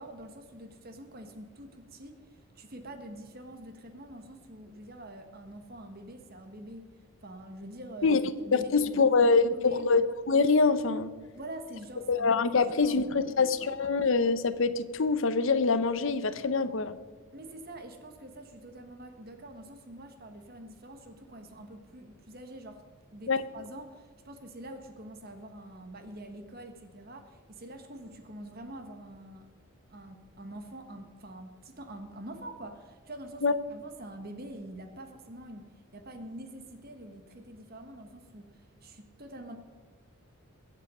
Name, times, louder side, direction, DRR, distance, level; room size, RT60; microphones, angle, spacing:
voice 1, 0.0-2.2 2.5-6.9 7.2-9.1 9.4-9.9 11.3-13.7 17.3-22.8 23.1-29.5 29.9-39.6, right 1 dB, 45° right, 6 dB, 1.4 m, -45 dB
voice 2, 8.5-11.1 12.1-17.0 23.3-23.4 33.4-33.5, left 4 dB, 60° left, 12 dB, 0.7 m, -25 dB
22.0 x 7.6 x 5.5 m, 1.4 s
head